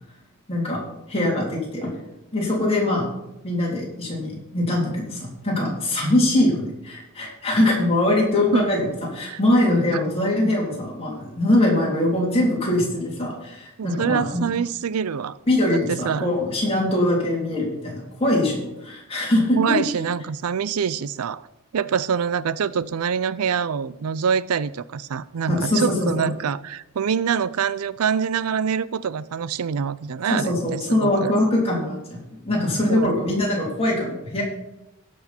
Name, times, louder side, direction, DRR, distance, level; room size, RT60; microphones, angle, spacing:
voice 1, 0.5-0.8 1.1-1.9 2.3-3.1 3.4-14.4 15.5-19.8 25.5-26.3 30.3-34.4, left 1 dB, 25° left, -3 dB, 3.5 m, -22 dB
voice 2, 13.8-15.4 15.9-16.3 19.5-21.5 21.7-31.3 32.9-33.1, right 7 dB, 80° right, 18 dB, 0.4 m, -25 dB
17.0 x 6.3 x 4.4 m, 0.92 s
head